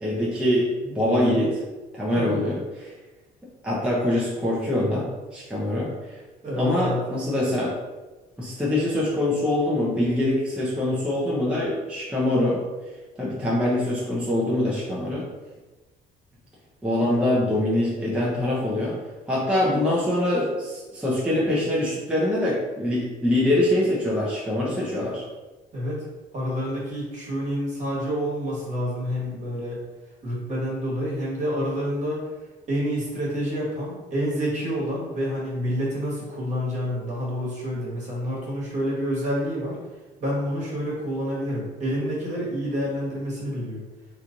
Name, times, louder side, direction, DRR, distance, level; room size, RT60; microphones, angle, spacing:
voice 1, 0.0-1.6 1.9-2.9 3.6-5.1 5.3-5.9 6.6-7.7 8.4-12.6 13.2-15.3 16.8-19.0 19.3-25.2, left 1 dB, 5° right, -6 dB, 0.7 m, -24 dB
voice 2, 6.4-7.0 17.0-17.3 25.7-26.0 26.3-29.8 30.2-32.2 32.7-39.8 40.2-43.8, equal, 45° right, -5 dB, 1.4 m, -28 dB
3.0 x 2.4 x 3.8 m, 1.2 s
cardioid pair, 110°, 17 cm